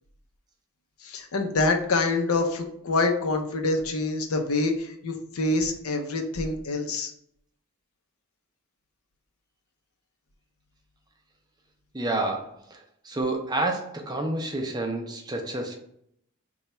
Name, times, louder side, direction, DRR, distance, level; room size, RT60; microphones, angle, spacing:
voice 1, 1.0-7.1, left 3 dB, 80° left, 4 dB, 0.6 m, -26 dB
voice 2, 11.9-15.8, right 2 dB, 20° right, 2 dB, 0.5 m, -29 dB
2.9 x 2.3 x 4.2 m, 0.71 s
head